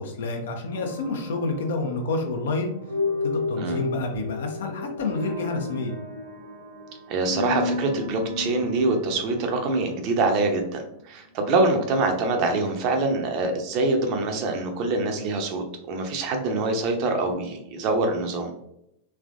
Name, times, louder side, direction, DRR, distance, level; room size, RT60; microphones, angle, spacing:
voice 1, 0.0-2.7 3.2-6.0, left 3 dB, 60° left, 3 dB, 0.6 m, -28 dB
sound 1, 0.7-10.7, left 3 dB, 70° right, 1.1 m, -33 dB
voice 2, 7.1-18.5, right 3 dB, 40° right, 4 dB, 0.7 m, -25 dB
3.4 x 3.3 x 2.4 m, 0.80 s
figure-of-eight pair, 90°, 0 cm